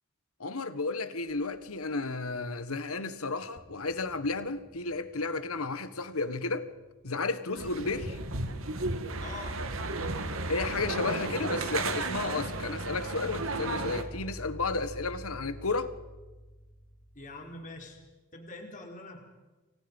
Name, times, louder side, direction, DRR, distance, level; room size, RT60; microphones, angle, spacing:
voice 1, 0.4-6.7 7.0-8.2 10.5-15.9, left 3 dB, 80° left, 1.6 m, -33 dB
sound 1, 1.3-2.8 3.1-3.2 3.6-7.9 11.1-18.1, equal, 50° left, 4.4 m, -46 dB
sound 2, 7.5-14.0, right 2 dB, 65° right, 2.2 m, -34 dB
voice 2, 9.2-10.2 17.1-18.0 18.3-19.2, left 2 dB, 35° left, 4.5 m, -44 dB
29.5 x 24.5 x 5.5 m
head